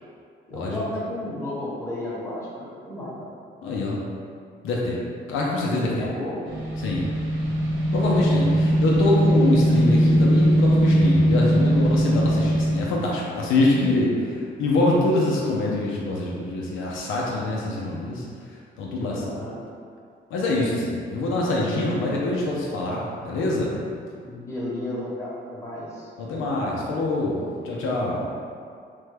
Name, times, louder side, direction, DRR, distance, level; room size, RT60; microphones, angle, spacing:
voice 1, 0.5-3.1 5.7-6.5 19.1-19.6 24.1-26.1, left 1 dB, 15° left, -7 dB, 1.1 m, -33 dB
voice 2, 3.6-4.0 4.6-5.0 5.3-6.1 6.8-7.0 7.9-18.2 18.8-19.4 20.3-23.7 26.2-28.3, left 2 dB, 85° left, -4 dB, 0.6 m, -25 dB
sound 1, 6.4-12.8, equal, 75° right, 0.6 m, -20 dB
3.4 x 2.2 x 3.3 m, 2.3 s
cardioid pair, 90°, 20 cm